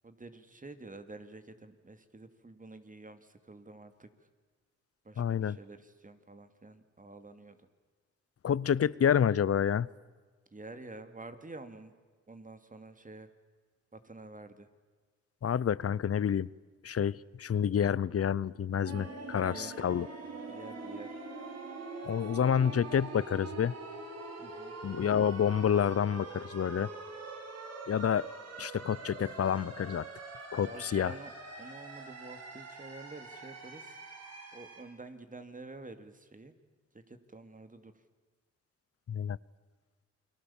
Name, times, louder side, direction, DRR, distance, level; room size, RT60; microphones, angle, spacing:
voice 1, 0.0-4.1 5.0-7.6 10.5-11.9 12.3-13.3 13.9-14.7 19.2-19.9 20.5-21.1 24.4-24.7 30.6-31.3 31.6-34.0 34.5-36.5 37.1-37.9, right 2 dB, 30° right, 9 dB, 2.6 m, -49 dB
voice 2, 5.2-5.6 8.4-9.9 15.4-16.5 16.8-20.1 22.1-23.7 24.8-26.9 27.9-28.3 28.6-30.1 30.5-31.1 39.1-39.4, left 8 dB, 55° left, 22 dB, 0.7 m, -28 dB
sound 1, 18.8-34.8, right 3 dB, 60° right, 5.3 m, -44 dB
29.0 x 22.0 x 7.3 m, 1.4 s
cardioid pair, 70°, 29 cm